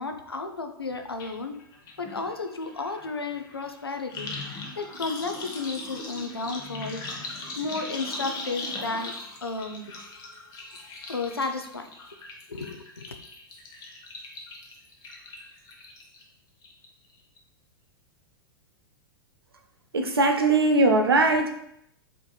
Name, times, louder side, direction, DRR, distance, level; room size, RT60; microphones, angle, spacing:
voice 1, 0.0-1.5 2.0-9.1 9.4-9.8 11.1-11.9 12.5-13.1, left 3 dB, 90° left, 6 dB, 0.4 m, -33 dB
sound 1, 1.2-1.3 1.6-16.2 16.6-17.1 17.4-17.5, left 2 dB, 30° left, 0.7 m, -40 dB
voice 2, 19.9-21.5, right 2 dB, 80° right, 4 dB, 0.5 m, -20 dB
4.4 x 2.9 x 2.3 m, 0.76 s
figure-of-eight pair, 100°, 12 cm